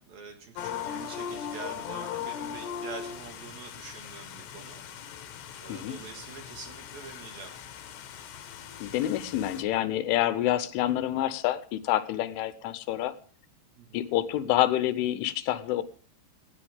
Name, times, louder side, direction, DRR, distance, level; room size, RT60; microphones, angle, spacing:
voice 1, 0.0-4.8 5.6-7.5 13.8-14.1, right 5 dB, 60° right, 5 dB, 3.1 m, -45 dB
sound 1, 0.6-9.6, left 8 dB, 70° left, 3.2 m, -39 dB
voice 2, 8.8-13.2 13.9-15.8, left 13 dB, 85° left, 13 dB, 3.4 m, -27 dB
19.0 x 16.5 x 3.6 m, 0.41 s
omnidirectional pair, 5.5 m